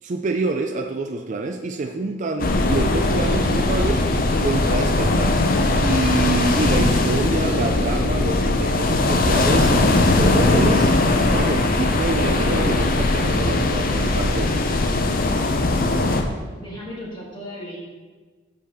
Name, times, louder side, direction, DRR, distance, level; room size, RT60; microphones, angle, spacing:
voice 1, 0.0-4.1 4.4-5.4 5.8-14.5, right 3 dB, 35° right, 5 dB, 0.3 m, -26 dB
sound 1, 2.4-16.2, left 2 dB, 40° left, 0.6 m, -19 dB
voice 2, 16.6-17.8, equal, 20° left, -5 dB, 1.4 m, -35 dB
5.6 x 5.1 x 6.6 m, 1.4 s
head